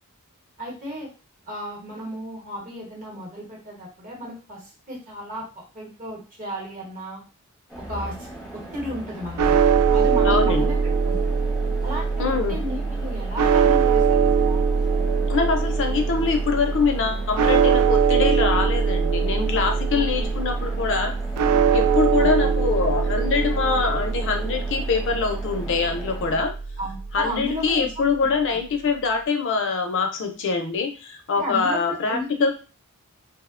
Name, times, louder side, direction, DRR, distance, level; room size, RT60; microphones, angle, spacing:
voice 1, 0.6-1.1 1.5-5.5 5.7-7.2 7.9-8.2 8.5-11.3 11.8-14.6 19.9-20.3 22.2-22.3 26.8-28.1 28.4-28.6 31.3-32.5, equal, 40° right, -2 dB, 0.9 m, -34 dB
sound 1, 7.7-26.4, right 1 dB, 5° right, 0.6 m, -39 dB
sound 2, 9.4-27.6, right 6 dB, 90° right, 0.3 m, -22 dB
voice 2, 10.2-10.7 12.2-12.6 15.3-21.1 21.7-26.5 27.1-32.5, left 4 dB, 55° left, 5 dB, 0.5 m, -24 dB
2.7 x 2.0 x 2.4 m, 0.34 s
head